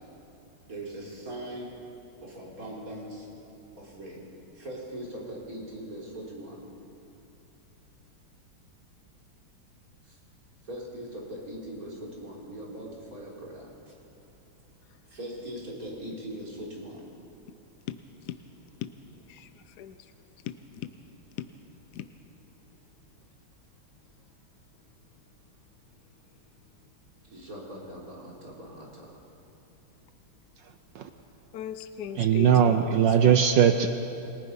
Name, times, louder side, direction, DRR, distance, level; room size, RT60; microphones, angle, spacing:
voice 1, 0.7-1.7 2.2-3.3 3.8-4.2 4.5-6.6 10.7-13.7 15.1-17.0 27.3-29.2, right 1 dB, 45° right, -3 dB, 4.1 m, -40 dB
voice 2, 20.4-20.9 21.4-21.5 21.9-22.1 31.5-32.8 33.2-33.3, left 10 dB, 65° left, 10 dB, 1.0 m, -36 dB
voice 3, 32.1-33.9, right 8 dB, 70° right, 8 dB, 1.4 m, -20 dB
28.5 x 18.5 x 5.4 m, 2.8 s
omnidirectional pair, 2.2 m